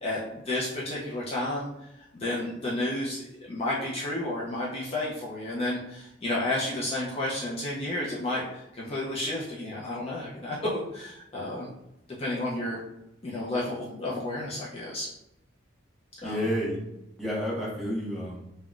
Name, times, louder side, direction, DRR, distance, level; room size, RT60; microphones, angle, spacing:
voice 1, 0.0-1.7 2.1-11.7 12.2-12.8 13.2-15.1 16.2-16.4, left 1 dB, 30° left, -6 dB, 0.4 m, -31 dB
voice 2, 16.2-16.8 17.2-18.6, equal, ahead, -7 dB, 0.8 m, -30 dB
3.6 x 2.1 x 2.3 m, 0.87 s
head